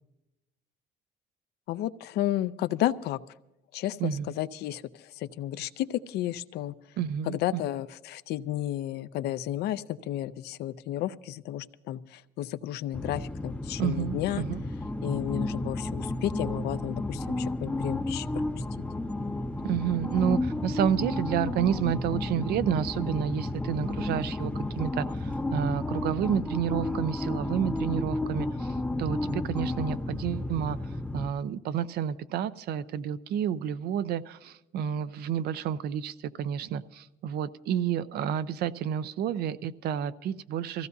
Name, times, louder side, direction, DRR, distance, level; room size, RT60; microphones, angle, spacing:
voice 1, 1.7-3.2 3.7-6.8 7.3-14.4 15.0-18.5, left 13 dB, 75° left, 14 dB, 0.5 m, -32 dB
voice 2, 7.0-7.6 13.8-14.6 19.6-30.8 31.1-40.9, right 9 dB, 70° right, 15 dB, 0.6 m, -30 dB
sound 1, 12.9-31.3, left 2 dB, 5° left, 0.6 m, -32 dB
23.5 x 15.5 x 2.7 m, 0.94 s
cardioid pair, 110°, 17 cm